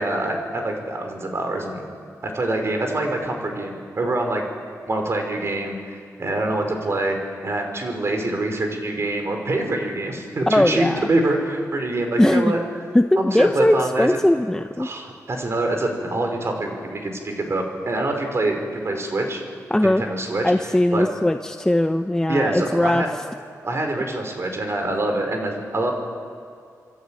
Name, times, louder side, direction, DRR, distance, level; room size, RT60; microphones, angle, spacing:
voice 1, 0.0-1.8 2.2-4.4 4.9-12.6 13.2-14.2 14.8-19.4 19.8-20.5 20.9-21.1 22.3-23.1 23.6-25.9, right 2 dB, 45° right, 4 dB, 5.3 m, -25 dB
voice 2, 10.5-11.1 12.2-12.5 12.9-14.9 19.7-20.1 20.4-23.1, left 1 dB, 10° left, 7 dB, 0.8 m, -19 dB
28.0 x 23.0 x 9.1 m, 2.3 s
wide cardioid pair, 95°, 6 cm